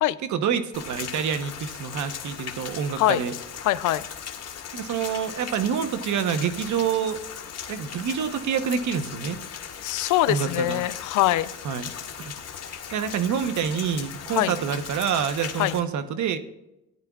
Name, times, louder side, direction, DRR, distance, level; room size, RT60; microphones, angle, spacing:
voice 1, 0.2-3.3 4.7-7.2 7.7-9.4 10.3-10.8 11.6-11.9 12.2-12.3 12.9-16.4, right 7 dB, 70° right, 10 dB, 1.0 m, -27 dB
Rain, 0.7-15.8, left 8 dB, 55° left, 1.4 m, -38 dB
voice 2, 3.6-4.0 9.8-11.5 14.3-14.5 15.6-15.7, left 15 dB, 85° left, 16 dB, 0.5 m, -23 dB
16.0 x 10.5 x 2.4 m, 0.91 s
cardioid pair, 90°, 30 cm